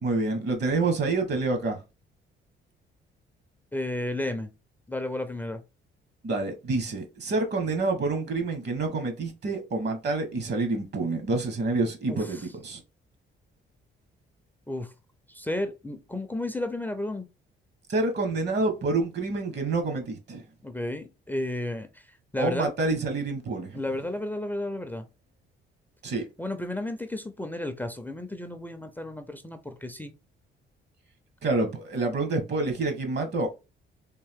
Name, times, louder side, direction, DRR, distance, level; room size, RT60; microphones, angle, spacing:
voice 1, 0.0-1.8 6.2-12.8 17.9-20.4 22.4-23.8 26.0-26.2 31.4-33.5, right 3 dB, 60° right, 1.2 m, -27 dB
voice 2, 3.7-4.5 4.9-5.6 12.1-12.5 14.7-14.9 15.3-17.3 20.6-22.7 23.7-25.0 26.4-30.1, left 1 dB, 10° left, 0.5 m, -33 dB
3.6 x 2.6 x 3.5 m
cardioid pair, 90°, 20 cm